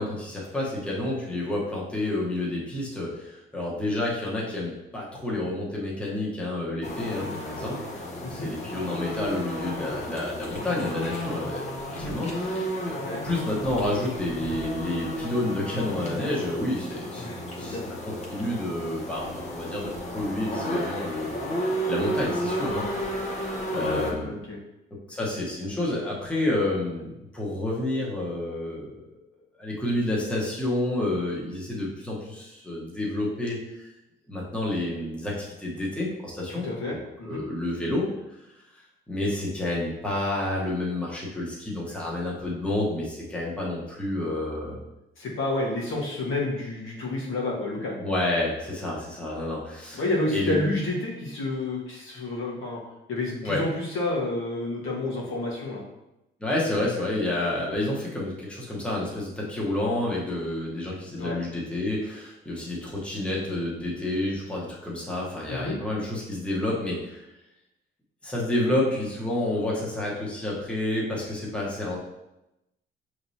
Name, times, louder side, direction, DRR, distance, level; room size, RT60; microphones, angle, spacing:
voice 1, 0.0-13.0 13.2-17.3 17.6-17.8 18.3-23.4 23.7-24.3 25.1-29.2 29.6-33.9 34.3-36.7 37.3-38.1 39.1-44.8 48.0-50.0 50.3-50.6 53.4-53.6 56.4-67.3 68.2-72.0, left 1 dB, 5° left, -5 dB, 1.0 m, -29 dB
sound 1, 6.8-24.1, equal, 35° left, 0.8 m, -33 dB
voice 2, 17.2-17.9 23.7-24.6 36.5-37.4 45.2-48.0 49.9-52.8 53.1-55.8 61.2-61.3 65.5-65.8, left 2 dB, 75° left, -3 dB, 1.3 m, -30 dB
5.8 x 3.2 x 2.7 m, 0.92 s
cardioid pair, 135°, 21 cm